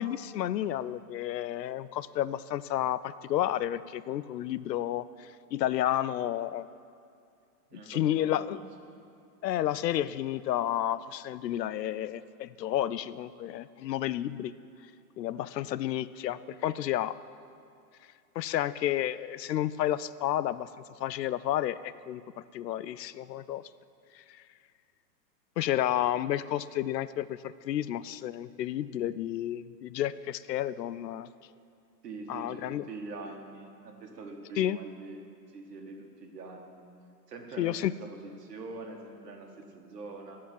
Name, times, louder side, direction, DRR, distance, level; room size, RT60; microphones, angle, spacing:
voice 1, 0.0-6.7 7.7-8.6 9.4-14.5 15.2-17.2 18.4-20.7 21.0-23.6 24.1-24.4 25.6-31.3 32.3-32.8 34.6-34.8 37.6-37.9, left 12 dB, 75° left, 16 dB, 0.6 m, -31 dB
voice 2, 7.7-8.6 32.0-35.2 35.5-36.9 37.3-40.4, right 3 dB, 70° right, 1 dB, 2.0 m, -44 dB
14.0 x 4.7 x 9.1 m, 2.5 s
hypercardioid pair, 175°, 50 cm